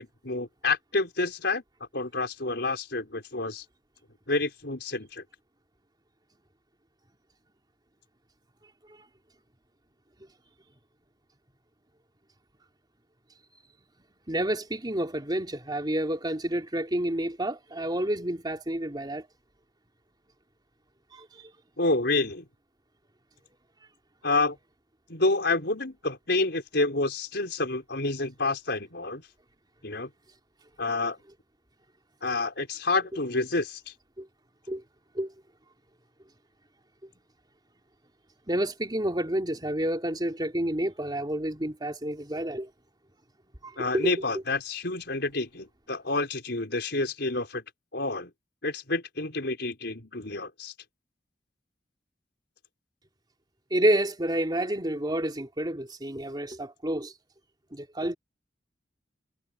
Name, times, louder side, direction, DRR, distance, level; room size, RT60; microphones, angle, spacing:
voice 1, 0.0-1.6 1.9-3.6 4.3-5.2 21.8-22.5 24.2-24.6 25.1-29.2 29.8-30.1 30.8-31.2 32.2-33.8 43.8-47.6 47.9-48.3 48.6-50.7, left 3 dB, 65° left, 5.7 m, -28 dB
voice 2, 14.3-19.3 21.1-21.5 34.2-34.3 34.7-34.8 35.1-35.3 38.5-42.7 43.6-44.1 53.7-57.1 57.7-58.1, right 1 dB, 25° right, 3.4 m, -29 dB
head